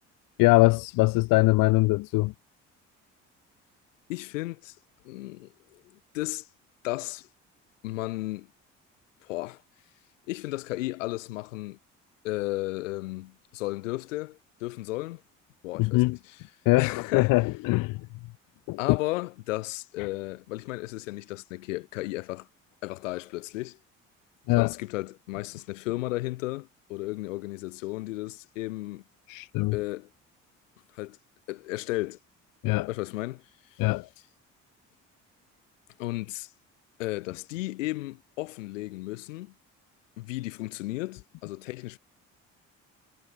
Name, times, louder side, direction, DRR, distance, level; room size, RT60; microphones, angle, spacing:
voice 1, 0.4-2.3 15.8-16.2 16.7-18.0 18.7-19.0 24.5-24.7 29.3-29.8 32.6-32.9 33.8-34.1, left 23 dB, 60° left, 0.6 m, -22 dB
voice 2, 4.1-4.8 5.0-6.5 6.8-7.3 7.8-8.5 9.2-9.6 10.3-11.8 12.2-15.2 15.6-16.0 16.8-17.3 18.8-22.5 22.8-23.8 24.6-29.0 29.7-30.1 30.9-31.2 31.5-32.2 32.9-33.4 33.7-33.8 36.0-36.5 37.0-39.5 40.2-42.0, left 19 dB, 80° left, 1.9 m, -34 dB
hypercardioid pair, 50°, 37 cm